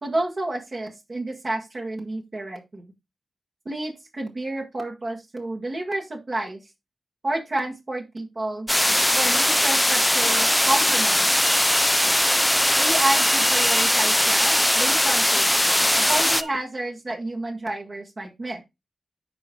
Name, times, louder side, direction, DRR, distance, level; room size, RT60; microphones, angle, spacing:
voice 1, 0.0-2.9 3.6-6.6 7.2-8.7 9.1-11.3 12.8-18.6, right 2 dB, 40° right, 1 dB, 1.6 m, -30 dB
sound 1, 8.7-16.4, left 1 dB, 5° left, 0.5 m, -20 dB
sound 2, 11.3-16.5, right 2 dB, 80° right, 2.1 m, -36 dB
13.5 x 5.0 x 2.2 m, 0.22 s
wide cardioid pair, 140°, 0 cm